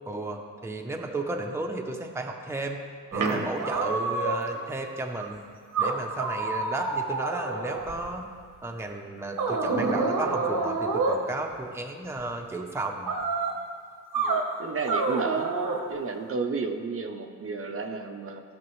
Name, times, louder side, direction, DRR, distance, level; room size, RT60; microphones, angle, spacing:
voice 1, 0.1-2.8 3.1-5.4 5.8-8.3 8.6-13.1, right 2 dB, 10° right, 2 dB, 0.6 m, -33 dB
sound 1, 3.1-4.6 5.2-5.3 5.7-8.1 9.4-11.2 13.1-13.6 14.1-14.5 14.9-15.8, right 3 dB, 85° right, 1.1 m, -27 dB
voice 2, 14.2-15.5 15.9-18.4, right 4 dB, 45° right, 4 dB, 0.6 m, -32 dB
16.5 x 5.9 x 3.1 m, 2.1 s
wide cardioid pair, 165°, 31 cm